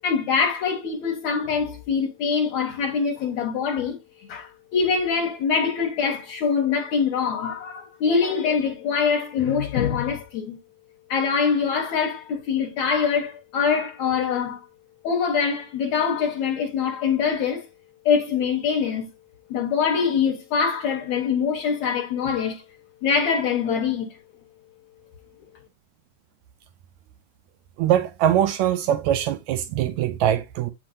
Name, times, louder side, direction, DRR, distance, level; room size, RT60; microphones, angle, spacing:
voice 1, 0.0-4.0 4.3-10.6 11.1-14.6 15.0-17.7 18.1-19.1 19.5-22.6 23.0-24.1, left 6 dB, 65° left, 2.0 m, -24 dB
voice 2, 27.8-30.7, right 10 dB, 80° right, 1.7 m, -22 dB
8.5 x 6.0 x 2.5 m
omnidirectional pair, 3.7 m